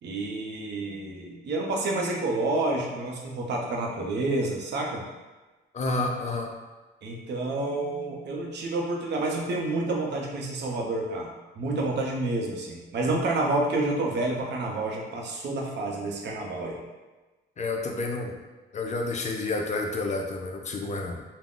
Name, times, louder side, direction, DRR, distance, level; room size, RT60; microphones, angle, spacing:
voice 1, 0.0-5.0 7.0-11.3 11.6-16.8, right 2 dB, 60° right, 0 dB, 0.6 m, -29 dB
voice 2, 5.7-6.5 17.6-18.3 18.7-21.2, left 2 dB, 35° left, 2 dB, 0.4 m, -29 dB
2.3 x 2.0 x 3.7 m, 1.2 s
cardioid pair, 90°, 20 cm